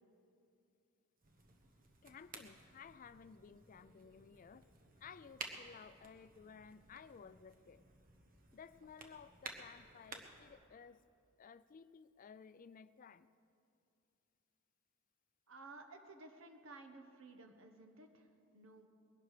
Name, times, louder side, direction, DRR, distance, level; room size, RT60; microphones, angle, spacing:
sound 1, 1.2-10.5, right 3 dB, 45° right, 1.3 m, -54 dB
voice 1, 2.0-4.7 5.0-7.8 8.5-11.0 11.4-13.3, left 6 dB, 40° left, 15 dB, 0.4 m, -56 dB
voice 2, 15.5-18.9, right 3 dB, 70° right, 6 dB, 1.3 m, -56 dB
21.0 x 11.5 x 5.0 m, 2.5 s
head